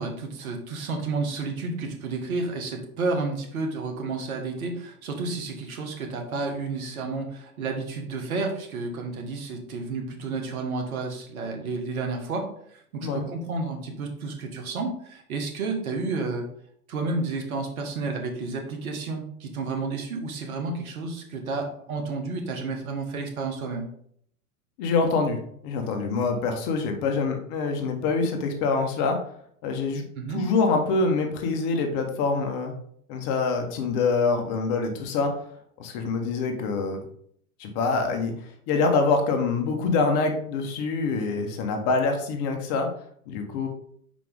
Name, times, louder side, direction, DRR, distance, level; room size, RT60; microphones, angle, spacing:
voice 1, 0.0-16.5 16.9-23.9 30.1-30.4, right 3 dB, 65° right, 3 dB, 1.7 m, -31 dB
voice 2, 24.8-29.2 29.6-30.0 30.3-32.7 33.1-35.3 35.8-37.0 37.6-38.3 38.7-42.9 43.3-43.7, left 4 dB, 40° left, 4 dB, 1.4 m, -25 dB
5.7 x 5.1 x 3.6 m, 0.64 s
hypercardioid pair, 105°, 46 cm